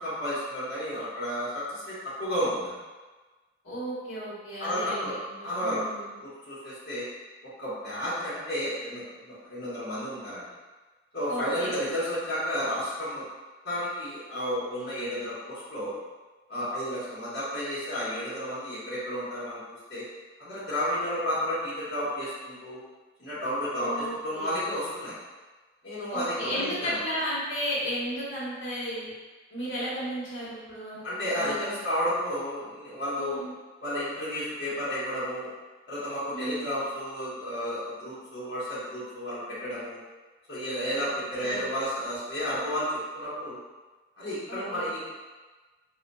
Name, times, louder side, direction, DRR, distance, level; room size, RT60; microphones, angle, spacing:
voice 1, 0.0-2.7 4.6-5.1 5.4-5.8 6.2-7.0 7.6-10.4 11.1-13.2 13.6-16.0 16.5-20.0 20.4-22.8 23.2-25.2 25.8-27.0 31.0-33.4 33.8-35.5 35.9-40.0 40.5-42.9 43.1-43.6 44.2-45.1, equal, 60° left, -11 dB, 1.0 m, -32 dB
voice 2, 3.6-6.1 11.3-11.8 23.8-24.6 26.1-29.1 29.5-31.0 31.3-31.8 33.2-33.5 36.3-36.7 41.4-41.6 44.5-44.9, equal, 85° left, -8 dB, 1.1 m, -34 dB
3.9 x 2.2 x 2.2 m, 1.3 s
head